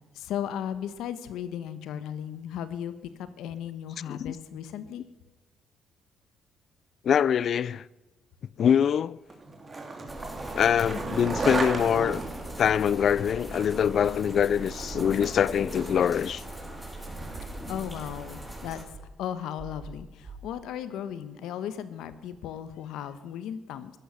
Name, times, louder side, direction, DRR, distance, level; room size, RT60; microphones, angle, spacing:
voice 1, 0.1-2.9 3.2-5.0 17.7-18.8 19.2-23.9, left 9 dB, 90° left, 1.2 m, -36 dB
voice 2, 7.0-7.8 8.6-9.2 10.5-12.2 12.6-16.4, left 8 dB, 60° left, 0.4 m, -24 dB
Skateboard, 9.3-17.6, right 3 dB, 30° right, 2.9 m, -36 dB
sound 1, 10.1-18.8, right 1 dB, ahead, 5.5 m, -40 dB
sound 2, 14.9-15.8 16.7-18.0 18.9-21.1, right 3 dB, 55° right, 5.0 m, -47 dB
15.0 x 11.0 x 6.9 m
cardioid pair, 90°, 0 cm